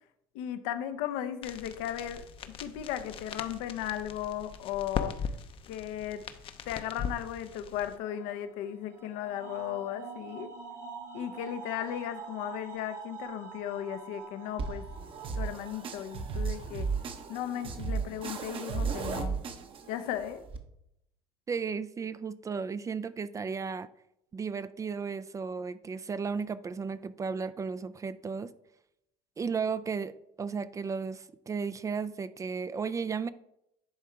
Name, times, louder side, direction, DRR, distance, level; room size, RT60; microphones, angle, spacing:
voice 1, 0.3-5.1 5.7-6.2 6.6-10.5 11.1-14.9 15.4-16.9 17.3-19.4 19.9-20.4, left 11 dB, 75° left, 10 dB, 0.7 m, -36 dB
sound 1, 1.4-8.0, left 6 dB, 45° left, 0.7 m, -40 dB
sound 2, 7.8-18.6 19.2-19.7, right 5 dB, 70° right, 1.6 m, -47 dB
sound 3, 14.6-20.6, right 5 dB, 45° right, 1.0 m, -35 dB
voice 2, 21.5-23.9 24.3-28.5 29.4-33.3, right 5 dB, 25° right, 15 dB, 0.4 m, -34 dB
10.5 x 3.7 x 4.5 m, 0.80 s
supercardioid pair, 85°, 13 cm